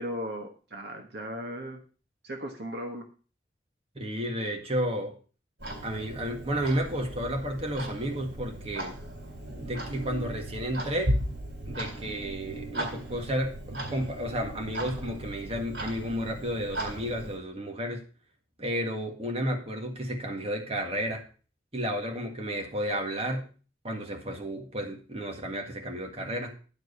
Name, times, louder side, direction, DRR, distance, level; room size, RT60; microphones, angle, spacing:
voice 1, 0.0-1.8 2.2-3.0, equal, 65° right, 4 dB, 1.3 m, -36 dB
voice 2, 4.0-5.1 5.8-9.0 9.6-11.2 11.6-18.0 18.6-21.2 21.7-23.5 23.8-26.5, equal, 35° right, 2 dB, 1.8 m, -32 dB
Clock, 5.6-17.4, right 1 dB, 80° right, 3.7 m, -36 dB
10.5 x 4.8 x 6.7 m, 0.38 s
head